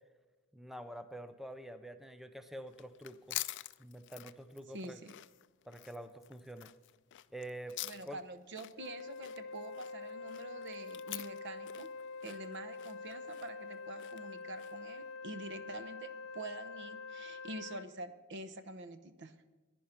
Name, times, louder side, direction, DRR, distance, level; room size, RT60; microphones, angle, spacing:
voice 1, 0.5-3.4 3.8-5.0 5.7-6.7 7.3-7.8 8.1-8.2, right 1 dB, ahead, 10 dB, 0.5 m, -47 dB
sound 1, 2.7-14.9, left 16 dB, 60° left, 0.4 m, -47 dB
voice 2, 4.7-5.1 7.8-11.9 12.2-19.4, right 2 dB, 55° right, 12 dB, 0.8 m, -46 dB
Wind instrument woodwind instrument, 8.8-17.9, left 4 dB, 75° left, 1.1 m, -46 dB
11.0 x 10.0 x 5.7 m, 1.3 s
head